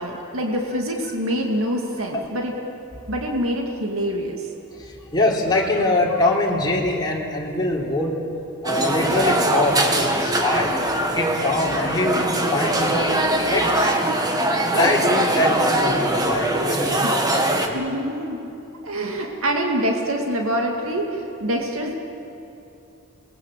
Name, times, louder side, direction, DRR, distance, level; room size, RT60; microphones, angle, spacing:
voice 1, 0.0-2.5 3.1-4.5 17.0-17.2 17.7-18.4 18.8-21.9, equal, 70° right, 1 dB, 2.4 m, -25 dB
voice 2, 4.7-8.1 8.6-10.7 11.1-13.2 13.4-14.2 14.7-17.8, left 2 dB, 20° left, -3 dB, 3.5 m, -23 dB
sound 1, 8.7-17.7, right 1 dB, 20° right, 1.7 m, -22 dB
26.5 x 20.0 x 7.6 m, 2.9 s
head